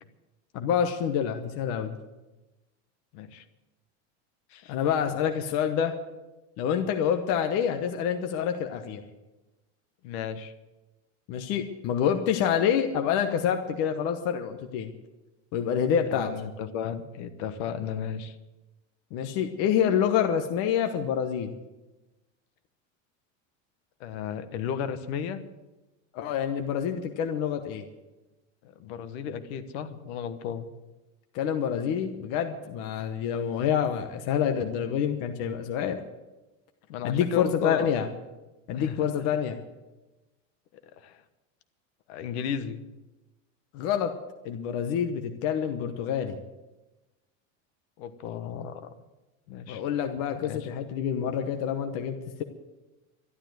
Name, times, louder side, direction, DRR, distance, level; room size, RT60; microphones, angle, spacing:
voice 1, 0.5-2.0 4.7-5.9 6.6-9.0 11.3-14.9 15.5-16.3 19.1-21.5 26.1-27.8 31.3-36.0 37.0-38.1 38.7-39.6 43.7-44.1 44.4-46.4 49.7-52.4, left 8 dB, 40° left, 6 dB, 1.0 m, -27 dB
voice 2, 3.1-3.4 4.5-4.7 10.0-10.5 16.1-18.4 24.0-25.4 28.6-30.7 36.9-37.9 38.7-39.4 41.0-41.2 42.1-42.8 48.0-48.9 49.5-49.8 50.4-50.7, left 8 dB, 55° left, 11 dB, 1.3 m, -34 dB
12.5 x 12.0 x 7.8 m, 1.1 s
supercardioid pair, 175°, 37 cm